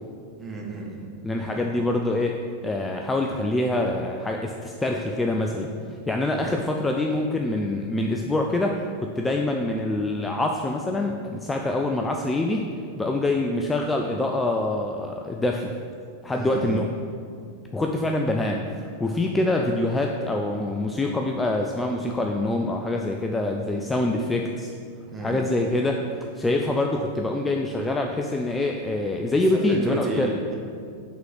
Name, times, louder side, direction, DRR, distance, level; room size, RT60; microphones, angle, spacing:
voice 1, 0.4-1.1 1.4-1.8 6.3-6.5 16.3-16.8 25.1-25.5 29.5-30.6, right 2 dB, 15° right, -2 dB, 1.2 m, -33 dB
voice 2, 1.2-2.4 2.6-5.7 6.1-15.7 16.2-16.9 17.7-24.7 25.2-26.0 26.4-30.3, left 2 dB, 10° left, 2 dB, 0.4 m, -25 dB
5.5 x 3.8 x 5.9 m, 2.3 s
figure-of-eight pair, 90°, 0 cm